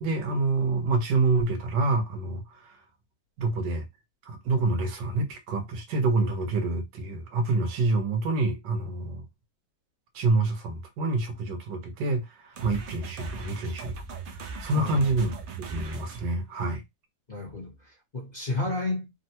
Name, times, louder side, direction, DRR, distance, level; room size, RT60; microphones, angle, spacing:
voice 1, 0.0-2.8 3.4-3.8 4.3-9.2 10.1-14.0 14.3-15.3 15.7-16.8, right 3 dB, 85° right, 1.5 m, -27 dB
sound 1, 12.5-16.3, right 4 dB, 65° right, 0.6 m, -39 dB
voice 2, 14.7-15.1 17.3-19.1, left 2 dB, 35° left, 0.8 m, -32 dB
3.4 x 2.1 x 2.8 m
omnidirectional pair, 1.9 m